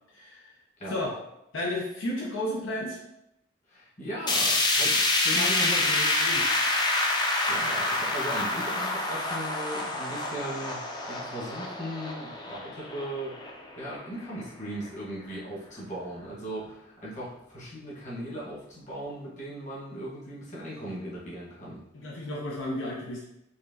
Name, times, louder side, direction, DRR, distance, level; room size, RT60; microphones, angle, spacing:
voice 1, 0.1-0.5 0.9-1.2 1.5-3.0 5.3-6.5 21.9-23.2, left 1 dB, 85° left, -3 dB, 0.8 m, -33 dB
voice 2, 3.7-6.0 7.5-10.8 11.1-13.4 13.8-21.8, right 1 dB, 40° left, -6 dB, 1.4 m, -38 dB
sound 1, 4.3-14.4 14.8-14.9 15.3-15.4 16.3-16.4, left 2 dB, 20° left, 0.5 m, -27 dB
4.2 x 2.9 x 2.7 m, 0.81 s
head